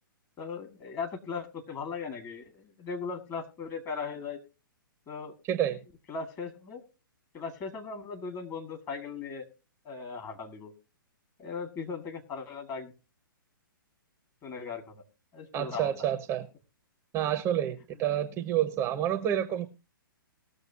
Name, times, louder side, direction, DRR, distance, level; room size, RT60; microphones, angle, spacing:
voice 1, 0.4-4.4 5.1-5.3 6.1-6.8 7.3-9.5 9.8-10.7 11.4-12.9 14.4-15.0 15.3-15.9, left 5 dB, 25° left, 2.0 m, -38 dB
voice 2, 5.5-5.8 15.5-16.5 17.1-19.7, right 11 dB, 25° right, 0.7 m, -29 dB
19.5 x 6.6 x 2.8 m
hypercardioid pair, 125°, 12 cm